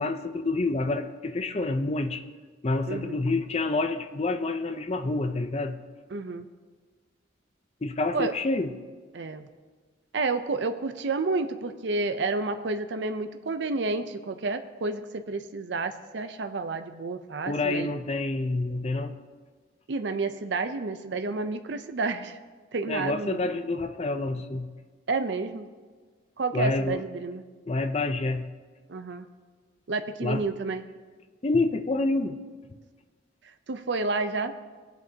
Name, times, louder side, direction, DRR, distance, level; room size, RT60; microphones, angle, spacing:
voice 1, 0.0-2.2 2.6-5.8 7.8-8.7 17.5-19.2 22.9-24.7 26.5-27.0 27.7-28.5 30.2-30.5 31.4-32.4, left 2 dB, 35° left, 8 dB, 0.5 m, -28 dB
voice 2, 2.9-3.2 6.1-6.5 8.1-8.3 9.1-9.5 10.1-17.9 19.9-22.4 22.7-23.4 25.1-25.7 26.4-27.4 28.9-29.3 29.9-30.8 33.7-34.5, right 3 dB, 65° right, 9 dB, 0.5 m, -30 dB
19.5 x 8.0 x 2.8 m, 1.5 s
head